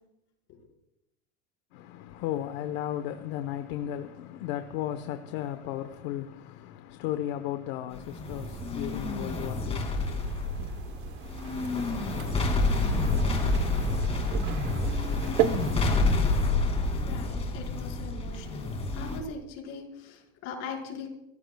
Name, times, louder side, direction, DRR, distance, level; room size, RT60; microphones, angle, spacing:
voice 1, 1.7-9.8, left 12 dB, 75° left, 1.1 m, -35 dB
sound 1, 7.9-19.2, left 2 dB, 20° left, 2.5 m, -28 dB
sound 2, 8.2-15.9, right 11 dB, 85° right, 1.1 m, -36 dB
voice 2, 17.0-21.1, left 4 dB, 50° left, 4.9 m, -40 dB
27.5 x 15.0 x 2.3 m
cardioid pair, 160°, 32 cm